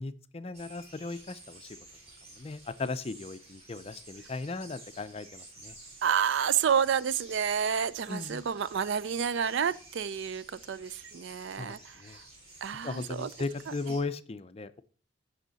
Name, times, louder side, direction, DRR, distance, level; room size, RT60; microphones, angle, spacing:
voice 1, 0.0-1.8 2.4-5.7 8.1-8.4 11.6-12.2 12.8-14.8, left 3 dB, 30° left, 0.4 m, -37 dB
sound 1, 0.5-14.0, right 2 dB, 30° right, 3.8 m, -52 dB
voice 2, 6.0-11.8 12.6-13.3, right 7 dB, 65° right, 0.4 m, -29 dB
15.0 x 5.7 x 4.0 m
head